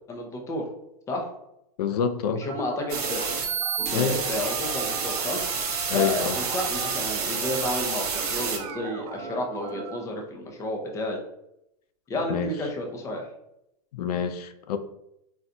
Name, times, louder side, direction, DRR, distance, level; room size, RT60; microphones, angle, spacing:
voice 1, 0.1-0.6 1.1-1.2 2.3-3.2 3.9-5.4 5.9-11.2 12.1-13.3, left 1 dB, 15° left, 2 dB, 0.5 m, -31 dB
voice 2, 1.8-2.5 3.9-4.2 5.9-6.4 12.3-12.5 13.9-14.8, left 7 dB, 85° left, 10 dB, 0.4 m, -26 dB
sound 1, 2.4-10.0, right 5 dB, 50° right, 0.5 m, -38 dB
sound 2, 2.9-8.6, right 5 dB, 75° right, 1.1 m, -29 dB
4.1 x 2.3 x 2.5 m, 0.81 s
supercardioid pair, 145°, 20 cm